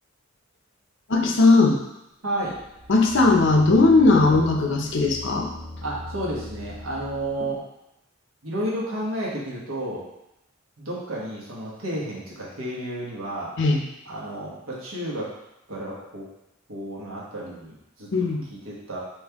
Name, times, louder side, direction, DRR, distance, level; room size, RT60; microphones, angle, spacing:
voice 1, 1.1-1.8 2.9-5.5 13.6-13.8 18.1-18.4, left 3 dB, 60° left, 2 dB, 0.6 m, -18 dB
voice 2, 2.2-2.6 4.1-4.3 5.8-7.6 8.4-10.0 10.8-13.5 14.1-15.3 15.7-16.3 16.7-18.1 18.6-19.0, right 1 dB, 85° right, -5 dB, 1.3 m, -31 dB
sound 1, 2.4-7.5, left 1 dB, 45° right, 1.0 m, -39 dB
4.3 x 3.2 x 3.5 m, 0.86 s
head